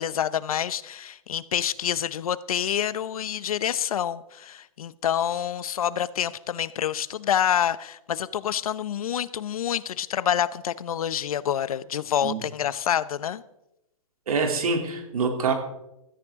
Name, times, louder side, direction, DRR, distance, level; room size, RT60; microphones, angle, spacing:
voice 1, 0.0-13.4, left 9 dB, 80° left, 0.8 m, -27 dB
voice 2, 14.3-15.5, right 4 dB, 85° right, 3.0 m, -25 dB
16.0 x 13.0 x 3.7 m
hypercardioid pair, 170°, 18 cm